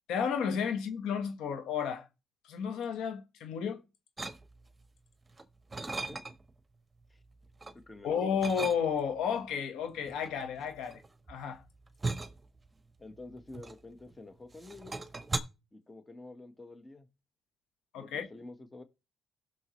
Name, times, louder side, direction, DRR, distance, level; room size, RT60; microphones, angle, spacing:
voice 1, 0.1-2.1 2.4-3.8 8.0-11.0 11.3-11.6 17.9-18.3, left 7 dB, 85° left, 1.4 m, -32 dB
sound 1, 4.2-4.8 5.3-6.6 7.0-7.8 8.4-9.2 10.1-14.2 14.5-15.4, right 3 dB, 20° right, 1.2 m, -38 dB
voice 2, 7.7-8.2 13.0-15.0 15.7-17.1 18.0-18.8, left 2 dB, 20° left, 1.5 m, -49 dB
16.5 x 6.4 x 3.2 m
cardioid pair, 90°, 0 cm